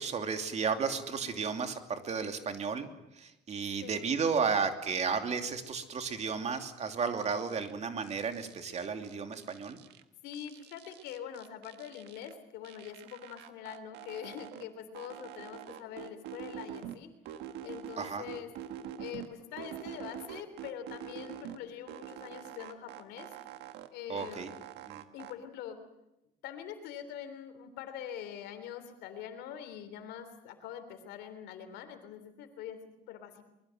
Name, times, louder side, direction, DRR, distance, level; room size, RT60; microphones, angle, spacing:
voice 1, 0.0-2.9 3.1-9.8 18.0-18.2 24.1-24.5 24.9-25.0, right 5 dB, 40° right, 6 dB, 2.8 m, -33 dB
voice 2, 1.1-1.4 3.8-4.1 10.2-17.1 17.6-18.5 19.0-23.3 23.9-24.5 25.1-25.8 26.4-33.5, left 9 dB, 90° left, 9 dB, 3.5 m, -44 dB
sound 1, 7.2-7.7 8.0-10.0 10.3-12.3 12.6-14.7 14.9-17.0 17.3-19.3 19.6-21.6 21.9-23.9 24.2-25.3, right 10 dB, 90° right, 1.5 m, -45 dB
23.5 x 21.5 x 7.8 m, 0.89 s
cardioid pair, 110°, 17 cm